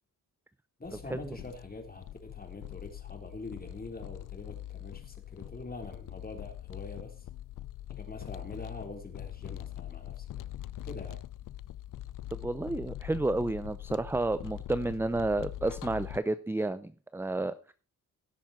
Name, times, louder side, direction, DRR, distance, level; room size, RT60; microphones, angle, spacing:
sound 1, 0.8-16.2, left 13 dB, 60° left, 0.5 m, -43 dB
voice 1, 0.8-7.3 7.9-10.4 10.8-11.2, left 2 dB, 25° left, 3.7 m, -44 dB
voice 2, 12.3-17.7, right 2 dB, 5° right, 0.6 m, -31 dB
16.5 x 7.1 x 4.4 m
cardioid pair, 95°, 36 cm